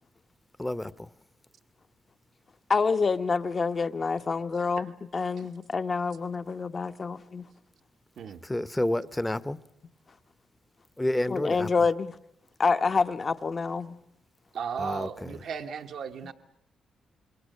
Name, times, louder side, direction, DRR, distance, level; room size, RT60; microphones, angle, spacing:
voice 1, 0.6-0.9 8.4-9.6 11.0-11.7 14.8-15.1, left 1 dB, 10° left, 0.9 m, -29 dB
voice 2, 2.7-7.4 11.3-12.2 12.6-14.0, left 4 dB, 40° left, 1.0 m, -27 dB
voice 3, 4.5-4.9 5.4-5.5 8.2-8.4 14.5-16.3, right 7 dB, 75° right, 1.0 m, -36 dB
27.0 x 22.5 x 6.6 m
cardioid pair, 85°, 0 cm